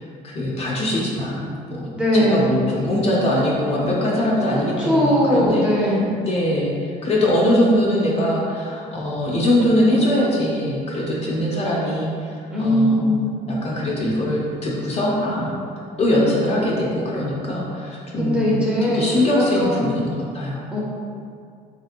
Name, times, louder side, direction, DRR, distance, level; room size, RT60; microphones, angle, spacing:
voice 1, 0.0-13.1 13.5-15.6 16.0-18.6 18.9-20.1 20.3-20.7, left 1 dB, 40° left, -4 dB, 0.5 m, -22 dB
voice 2, 1.9-2.4 4.8-6.1 12.5-13.3 18.2-19.1 19.3-19.9 20.7-20.8, equal, 5° right, -7 dB, 0.6 m, -19 dB
2.8 x 2.8 x 2.4 m, 2.3 s
cardioid pair, 110°, 17 cm